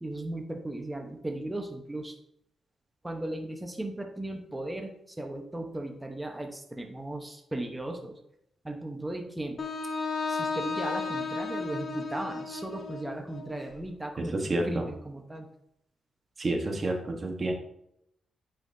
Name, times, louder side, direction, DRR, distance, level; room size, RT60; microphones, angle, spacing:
voice 1, 0.0-2.2 3.0-8.2 8.6-9.6 10.3-15.5, right 1 dB, 10° right, 3 dB, 1.1 m, -37 dB
Wind instrument woodwind instrument, 9.6-13.6, left 4 dB, 50° left, 1.1 m, -33 dB
voice 2, 14.2-14.8 16.4-17.5, right 2 dB, 40° right, 4 dB, 1.3 m, -29 dB
9.2 x 5.7 x 2.8 m, 0.75 s
cardioid pair, 85°, 0 cm